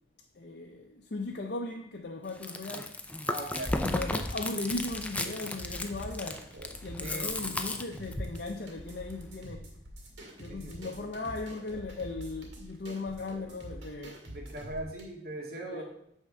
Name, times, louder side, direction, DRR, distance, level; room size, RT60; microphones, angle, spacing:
voice 1, 0.3-3.0 3.8-6.5 6.8-9.7 10.4-14.3 15.5-15.8, left 2 dB, 55° left, 0.7 m, -37 dB
Chewing mastication, 2.3-8.4, left 2 dB, 5° left, 0.5 m, -34 dB
voice 2, 3.3-3.8 7.0-7.6 10.5-10.9 11.2-11.4 14.3-15.8, right 1 dB, 55° right, 1.9 m, -40 dB
sound 1, 4.7-15.0, equal, 80° right, 2.0 m, -46 dB
9.0 x 3.7 x 6.6 m
head